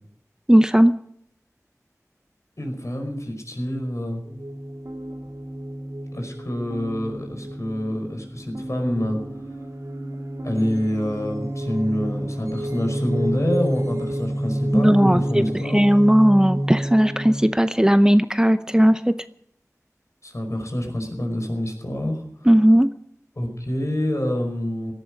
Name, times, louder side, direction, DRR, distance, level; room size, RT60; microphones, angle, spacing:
voice 1, 0.5-0.9 14.7-19.1 22.5-22.9, equal, 10° right, 11 dB, 0.7 m, -17 dB
voice 2, 2.6-4.2 6.1-9.2 10.4-15.9 20.2-22.2 23.3-24.9, left 1 dB, 60° left, 4 dB, 5.3 m, -27 dB
sound 1, 4.2-17.4, right 1 dB, 70° right, 4.1 m, -29 dB
17.5 x 12.5 x 6.5 m, 0.69 s
wide cardioid pair, 40°, 6 cm